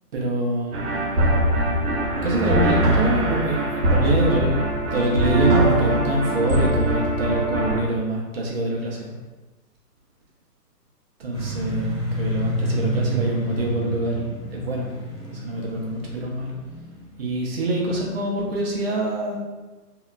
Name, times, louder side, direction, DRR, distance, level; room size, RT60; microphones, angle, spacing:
voice 1, 0.1-0.8 2.2-9.2 11.2-14.9 15.3-16.6 17.2-19.4, right 1 dB, 40° right, -2 dB, 0.6 m, -25 dB
sound 1, 0.7-7.8, right 1 dB, 70° right, 0.7 m, -21 dB
sound 2, 11.3-17.5, equal, 5° left, 0.5 m, -29 dB
2.8 x 2.3 x 2.3 m, 1.2 s
hypercardioid pair, 140°, 48 cm